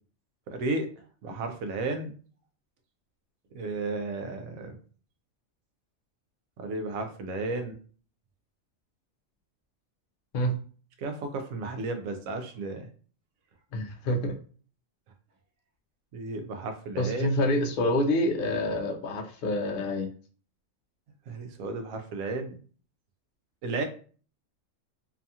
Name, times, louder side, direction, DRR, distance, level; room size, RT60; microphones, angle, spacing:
voice 1, 0.5-0.9 1.2-2.1 3.5-4.8 6.6-7.8 11.0-12.9 16.1-17.3 21.3-22.5 23.6-23.8, right 3 dB, 85° right, 6 dB, 1.0 m, -33 dB
voice 2, 13.7-14.4 17.0-20.1, left 1 dB, 60° left, 3 dB, 0.6 m, -27 dB
2.8 x 2.3 x 2.7 m, 0.42 s
omnidirectional pair, 1.4 m